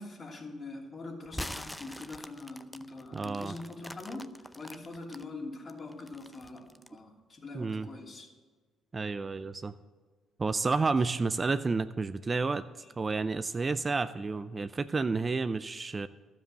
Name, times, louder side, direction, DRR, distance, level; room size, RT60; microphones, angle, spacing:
voice 1, 0.0-8.3 12.8-12.9, left 2 dB, 40° left, 0 dB, 2.9 m, -43 dB
sound 1, 1.3-5.2 5.7-7.0, left 1 dB, 10° left, 0.6 m, -43 dB
voice 2, 3.1-3.5 7.5-7.9 8.9-9.7 10.4-12.6 13.0-16.1, right 4 dB, 35° right, 12 dB, 0.5 m, -30 dB
12.5 x 7.5 x 7.7 m, 1.4 s
hypercardioid pair, 55°, 0 cm